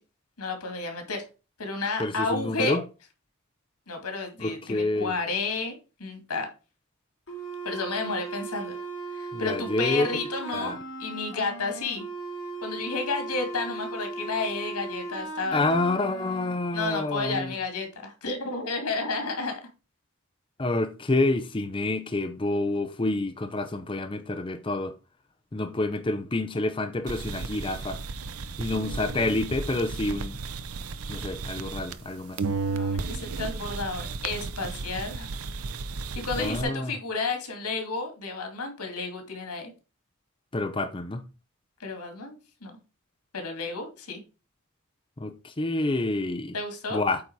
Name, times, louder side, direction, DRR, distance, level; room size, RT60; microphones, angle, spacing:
voice 1, 0.4-1.2 1.6-2.8 3.9-6.5 7.6-8.8 9.1-12.0 12.6-15.6 15.9-16.1 16.7-19.5 32.7-35.3 36.2-39.7 41.8-42.7 43.3-44.2 46.5-47.0, left 3 dB, 90° left, 2.3 m, -31 dB
voice 2, 2.0-2.8 4.4-5.1 9.3-10.1 10.5-10.7 15.5-17.5 20.6-24.9 25.5-28.0 28.6-30.4 31.1-32.4 36.4-36.9 40.5-41.2 45.2-46.5 46.9-47.2, left 2 dB, 20° left, 0.5 m, -28 dB
sound 1, 7.3-16.5, right 3 dB, 60° left, 3.3 m, -37 dB
sound 2, 27.1-32.1 32.4-36.6, right 4 dB, 75° right, 0.6 m, -34 dB
8.5 x 4.1 x 4.6 m
head